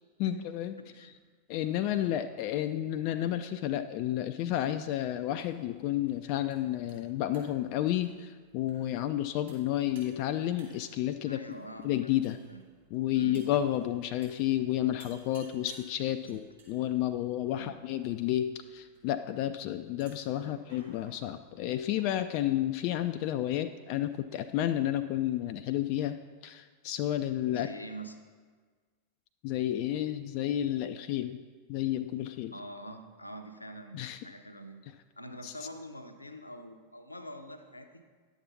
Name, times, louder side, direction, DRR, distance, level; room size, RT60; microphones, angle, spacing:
voice 1, 0.2-0.7 1.5-11.4 11.8-12.4 12.9-27.7 29.4-31.4 31.7-32.5 33.9-34.2 35.4-35.5, left 12 dB, 45° left, 9 dB, 0.3 m, -31 dB
voice 2, 0.8-1.1 1.7-2.2 11.3-12.1 12.5-12.6 13.1-13.4 16.2-16.4 17.5-17.7 19.3-19.4 20.4-20.6 27.5-28.2 32.5-34.8 35.2-38.0, right 1 dB, 85° left, 6 dB, 0.7 m, -45 dB
sound 1, 4.5-23.3, right 4 dB, 65° right, 2.8 m, -62 dB
11.0 x 7.2 x 4.0 m, 1.5 s
figure-of-eight pair, 90°, 0 cm